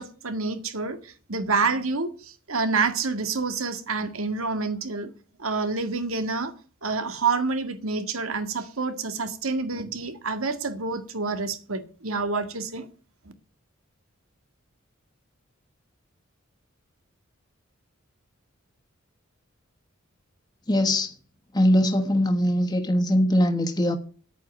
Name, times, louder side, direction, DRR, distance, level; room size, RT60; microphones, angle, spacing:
voice 1, 0.0-5.1 5.4-6.5 6.8-12.9, right 4 dB, 90° right, 2.0 m, -28 dB
voice 2, 20.7-21.1 21.5-24.0, equal, 20° left, 1.2 m, -21 dB
9.6 x 9.0 x 9.6 m
head